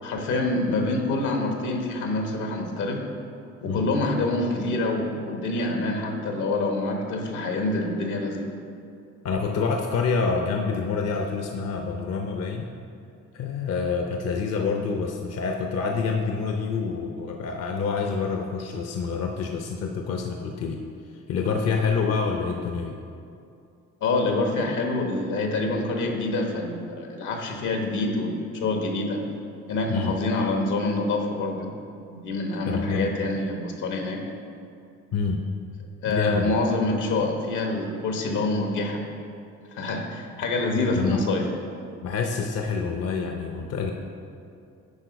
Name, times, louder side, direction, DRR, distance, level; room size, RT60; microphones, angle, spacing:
voice 1, 0.0-3.0 3.6-8.5 24.0-29.2 29.7-31.7 32.1-34.2 36.0-39.0 39.7-41.5, left 2 dB, 85° left, 2 dB, 1.2 m, -26 dB
voice 2, 9.2-12.7 13.3-20.8 21.3-23.0 29.9-30.2 32.7-33.1 35.1-35.4 36.1-36.7 40.9-41.3 42.0-43.9, left 5 dB, 55° left, 3 dB, 0.6 m, -27 dB
9.5 x 3.9 x 5.1 m, 2.5 s
cardioid pair, 90°, 30 cm